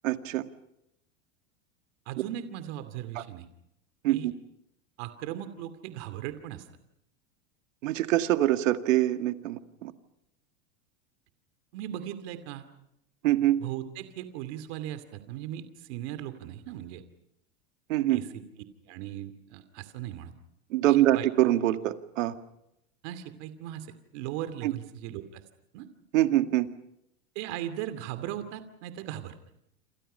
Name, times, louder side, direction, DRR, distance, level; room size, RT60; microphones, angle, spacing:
voice 1, 0.0-0.4 4.0-4.3 7.8-9.9 13.2-13.6 17.9-18.2 20.7-22.3 24.6-24.7 26.1-26.7, right 14 dB, 80° right, 8 dB, 2.1 m, -24 dB
voice 2, 2.1-3.5 4.1-4.3 5.0-6.7 11.7-12.6 13.6-17.0 18.1-18.4 18.9-20.3 20.9-21.3 23.0-25.4 25.7-25.9 27.3-29.4, right 12 dB, 60° right, 10 dB, 2.6 m, -38 dB
28.5 x 27.5 x 5.6 m, 0.81 s
supercardioid pair, 135°, 38 cm